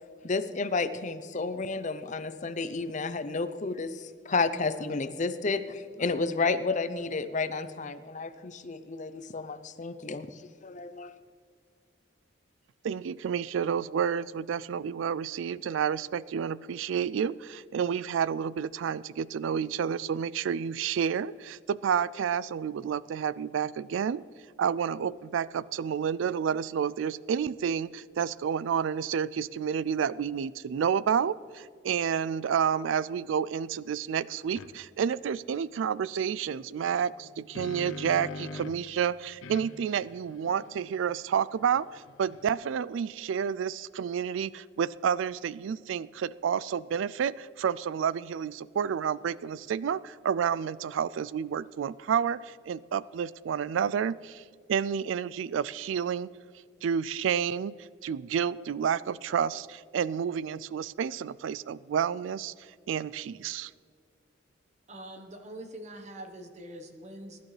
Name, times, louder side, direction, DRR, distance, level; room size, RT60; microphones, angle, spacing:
voice 1, 0.2-11.1, left 4 dB, 40° left, 11 dB, 0.6 m, -31 dB
voice 2, 12.8-24.2 24.6-54.4 54.7-56.3 56.8-57.7 58.0-62.5 62.9-63.7, right 7 dB, 75° right, 19 dB, 0.3 m, -30 dB
sound 1, 34.6-34.7 37.1-38.9 39.4-42.7, left 3 dB, 85° left, 0.7 m, -44 dB
voice 3, 64.9-67.4, right 1 dB, 35° right, 5 dB, 1.2 m, -44 dB
22.0 x 11.0 x 3.3 m, 2.2 s
head